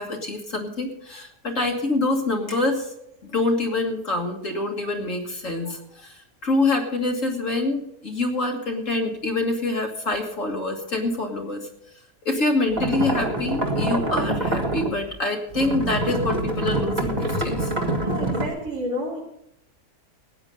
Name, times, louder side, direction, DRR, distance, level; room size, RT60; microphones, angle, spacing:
voice 1, 0.0-2.9 3.2-11.7 12.2-17.7, left 2 dB, 55° left, 2 dB, 2.1 m, -26 dB
sound 1, 12.8-15.2 15.5-18.5, right 1 dB, 30° right, 1.8 m, -25 dB
voice 2, 18.0-19.2, equal, 70° right, -6 dB, 3.6 m, -30 dB
16.0 x 9.9 x 5.4 m, 0.78 s
omnidirectional pair, 1.6 m